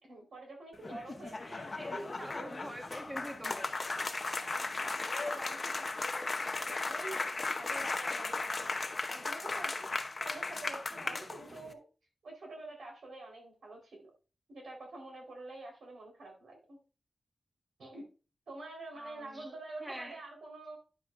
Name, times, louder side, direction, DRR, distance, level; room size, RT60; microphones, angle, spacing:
voice 1, 0.0-2.0 2.4-2.5 4.4-7.2 7.6-8.8 9.1-11.8 12.2-14.1 14.5-16.8 17.8-18.0 18.5-20.8, right 2 dB, 85° right, 1 dB, 4.0 m, -47 dB
sound 1, 0.7-11.7, left 3 dB, 40° left, 0.8 m, -36 dB
voice 2, 1.4-3.7 18.9-19.5 19.8-20.2, equal, 10° right, 4 dB, 1.3 m, -45 dB
9.6 x 7.6 x 2.5 m, 0.34 s
wide cardioid pair, 120°, 0 cm